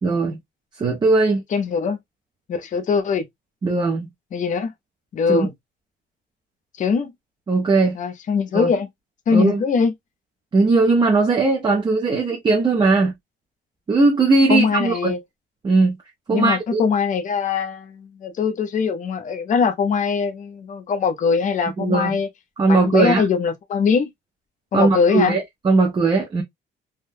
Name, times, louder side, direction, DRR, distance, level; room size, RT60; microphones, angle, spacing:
voice 1, 0.0-0.4 0.8-1.4 3.6-4.1 5.3-5.5 7.5-8.0 8.5-8.7 9.3-9.6 10.5-13.1 13.9-15.1 15.6-16.0 16.3-16.8 21.8-22.2 22.6-23.2 24.7-26.4, right 3 dB, 25° right, 0.6 m, -18 dB
voice 2, 1.5-2.0 2.5-3.3 4.3-4.7 5.1-5.5 6.8-7.1 7.9-8.9 9.3-9.9 14.5-15.2 16.3-22.3 22.7-24.1 24.7-25.3, left 5 dB, 40° left, 0.6 m, -21 dB
3.5 x 2.2 x 2.6 m
cardioid pair, 180°, 20 cm